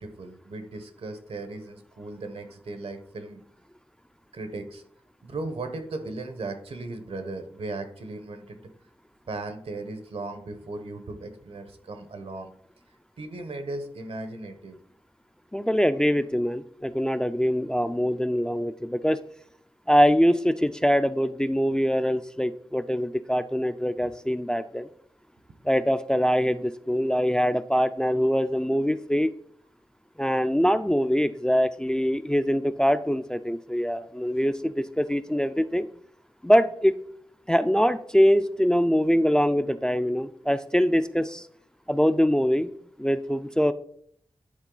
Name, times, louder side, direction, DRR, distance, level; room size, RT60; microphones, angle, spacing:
voice 1, 0.0-3.4 4.3-4.8 5.2-8.6 9.3-12.5 13.2-14.8, right 2 dB, 80° right, 8 dB, 1.0 m, -37 dB
voice 2, 15.5-19.2 19.9-24.9 25.6-29.3 30.2-35.9 36.4-36.9 37.5-41.5 41.9-42.7 43.0-43.7, equal, 5° left, 11 dB, 0.3 m, -23 dB
9.8 x 4.0 x 3.9 m, 0.63 s
wide cardioid pair, 105°, 10 cm